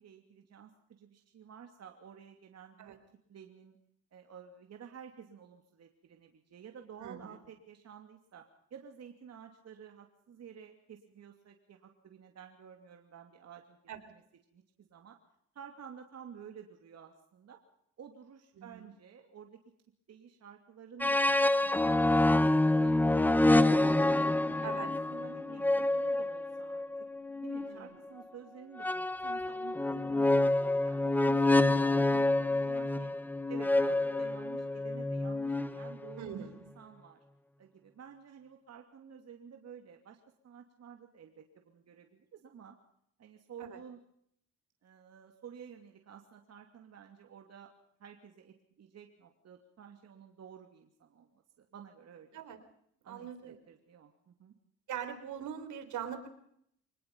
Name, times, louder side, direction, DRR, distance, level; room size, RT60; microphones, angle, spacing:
voice 1, 0.0-2.9 3.3-3.8 4.1-8.4 8.7-13.8 14.1-14.2 14.5-15.2 15.5-17.6 18.0-19.6 20.1-22.0 22.4-22.9 23.4-26.8 27.4-30.4 30.8-33.1 33.5-37.2 37.6-40.2 40.4-42.8 43.2-44.0 44.8-47.7 48.0-51.3 51.6-52.4 53.0-54.5, right 7 dB, 55° right, 4 dB, 2.8 m, -52 dB
voice 2, 7.0-7.4 13.9-14.0 18.6-18.9 24.6-24.9 27.6-27.8 36.2-36.7 43.6-43.8 52.3-52.6 53.0-53.6 54.9-56.3, right 8 dB, 75° right, 9 dB, 4.0 m, -42 dB
sound 1, 21.0-27.7 28.8-36.2, left 2 dB, 5° left, 1.0 m, -27 dB
25.0 x 20.0 x 5.4 m, 0.69 s
cardioid pair, 90°, 30 cm